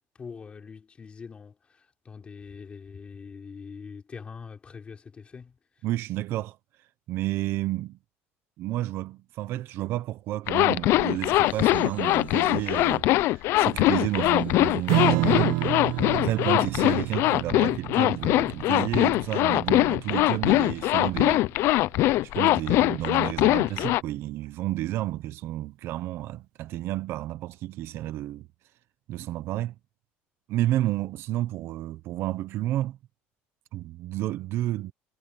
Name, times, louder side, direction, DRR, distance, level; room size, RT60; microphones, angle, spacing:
voice 1, 0.2-5.6, left 5 dB, 25° left, 3.6 m, -43 dB
voice 2, 5.8-6.6 7.1-8.0 8.6-13.1 13.3-15.8 16.1-21.5 22.2-28.5 29.1-29.7 30.5-33.0 33.7-34.9, right 14 dB, 55° right, 0.9 m, -31 dB
sound 1, 10.3-10.5 11.4-15.0 15.3-17.1, right 7 dB, 30° right, 5.2 m, -58 dB
Zipper (clothing), 10.5-24.0, left 17 dB, 60° left, 0.5 m, -22 dB
Strum, 14.9-21.7, right 20 dB, 90° right, 0.8 m, -30 dB
cardioid pair, 150°, 5 cm